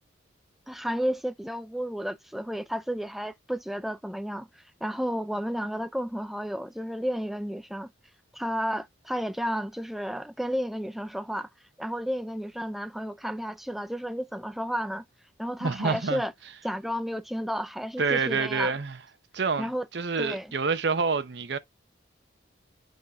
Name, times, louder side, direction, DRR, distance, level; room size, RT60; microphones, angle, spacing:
voice 1, 0.7-7.9 8.3-11.5 11.8-15.0 15.4-16.3 16.6-18.7 19.6-19.9 20.2-20.5, equal, ahead, 0.3 m, -32 dB
voice 2, 15.6-16.2 18.0-19.0 19.3-21.6, right 4 dB, 60° right, 0.7 m, -27 dB
8.0 x 5.6 x 2.3 m
head